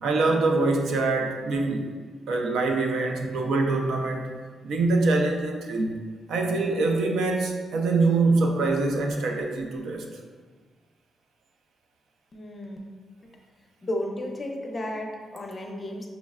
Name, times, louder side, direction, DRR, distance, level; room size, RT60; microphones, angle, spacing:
voice 1, 0.0-1.9 2.3-4.3 4.6-6.0 6.3-10.1, right 3 dB, 80° right, 2 dB, 0.5 m, -24 dB
voice 2, 12.3-12.8 13.8-16.1, left 1 dB, 25° left, 1 dB, 0.5 m, -33 dB
5.6 x 3.1 x 2.4 m, 1.5 s
wide cardioid pair, 150°, 0 cm